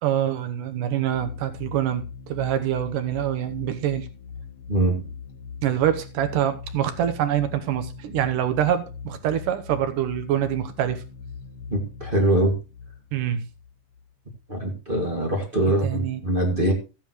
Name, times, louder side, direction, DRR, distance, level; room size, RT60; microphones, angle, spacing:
voice 1, 0.0-4.1 5.6-11.0 13.1-13.5 15.8-16.2, right 11 dB, 80° right, 2.6 m, -25 dB
sound 1, 1.1-14.4, left 5 dB, 90° left, 4.6 m, -40 dB
voice 2, 4.7-5.0 11.7-12.6 14.5-16.7, right 1 dB, 20° right, 1.7 m, -23 dB
14.5 x 9.0 x 3.1 m
omnidirectional pair, 3.7 m